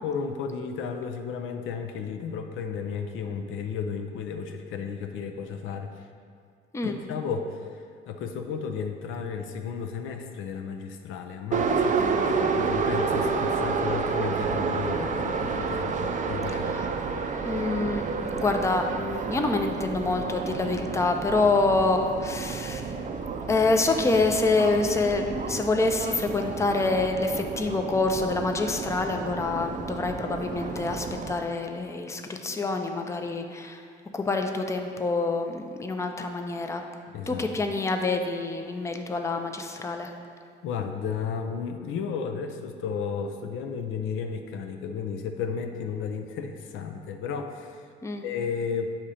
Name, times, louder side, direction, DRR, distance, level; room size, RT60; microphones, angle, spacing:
voice 1, 0.0-6.1 6.8-16.8 37.1-37.5 40.6-47.9 48.2-48.9, left 6 dB, 85° left, 5 dB, 0.5 m, -33 dB
Subway metro underground, 11.5-31.3, right 5 dB, 40° right, 0.4 m, -30 dB
Trumpet, 11.6-23.7, right 4 dB, 65° right, 0.7 m, -47 dB
voice 2, 17.4-22.9 23.5-33.8 34.1-36.8 37.3-40.1 48.0-48.2, left 3 dB, 15° left, 4 dB, 0.4 m, -26 dB
7.2 x 2.9 x 4.9 m, 2.2 s
cardioid pair, 90°, 20 cm